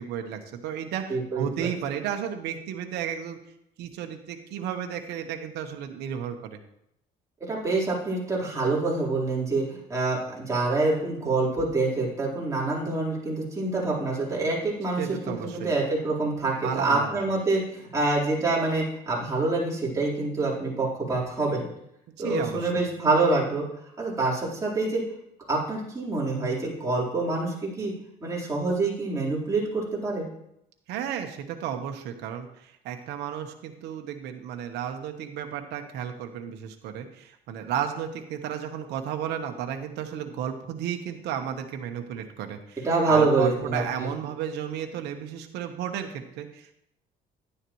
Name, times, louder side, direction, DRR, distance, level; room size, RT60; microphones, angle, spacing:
voice 1, 0.0-3.4 3.8-6.6 15.0-15.7 16.6-17.2 22.2-22.8 30.9-46.7, right 9 dB, 85° right, 5 dB, 1.1 m, -33 dB
voice 2, 1.1-1.7 7.5-21.7 22.2-23.6 24.0-25.0 25.5-27.9 28.2-30.3 42.8-44.1, right 3 dB, 20° right, -6 dB, 4.0 m, -26 dB
11.0 x 9.9 x 3.1 m, 0.79 s
cardioid pair, 110°, 17 cm